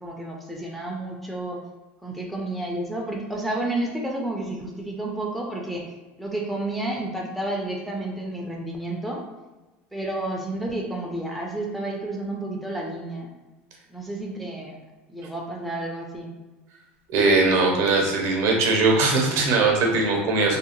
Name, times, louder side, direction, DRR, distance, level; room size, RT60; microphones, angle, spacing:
voice 1, 0.0-1.6 2.0-5.8 6.2-9.2 9.9-13.3 13.9-14.8 15.1-16.3, right 1 dB, ahead, -2 dB, 0.5 m, -31 dB
voice 2, 17.1-20.6, right 3 dB, 60° right, 0 dB, 0.7 m, -20 dB
2.7 x 2.0 x 2.9 m, 1.2 s
supercardioid pair, 105°, 6 cm